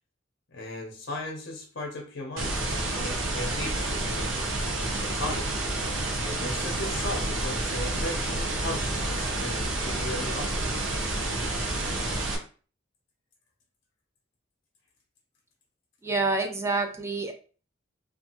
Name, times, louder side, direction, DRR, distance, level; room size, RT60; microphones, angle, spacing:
voice 1, 0.5-4.3 5.0-5.6 6.2-10.6, left 1 dB, 55° left, 0 dB, 0.6 m, -37 dB
sound 1, 2.4-12.4, right 2 dB, 75° right, 0.6 m, -29 dB
voice 2, 16.0-17.3, right 3 dB, 15° right, 4 dB, 0.3 m, -27 dB
2.7 x 2.3 x 2.8 m, 0.38 s
head